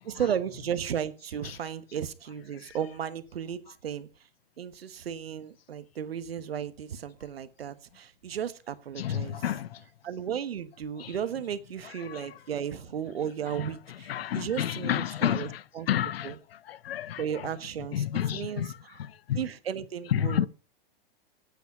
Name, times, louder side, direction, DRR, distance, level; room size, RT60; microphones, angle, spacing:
voice 1, 0.0-4.1 4.6-9.4 10.0-15.5 15.7-15.9 16.2-16.4 17.2-19.0 19.3-20.5, right 8 dB, 85° right, 1.3 m, -34 dB
voice 2, 9.0-9.8 11.0-11.1 12.0-12.4 13.5-18.8 19.3-19.5 20.1-20.5, left 10 dB, 80° left, 0.8 m, -31 dB
10.0 x 8.5 x 5.6 m
hypercardioid pair, 125°, 29 cm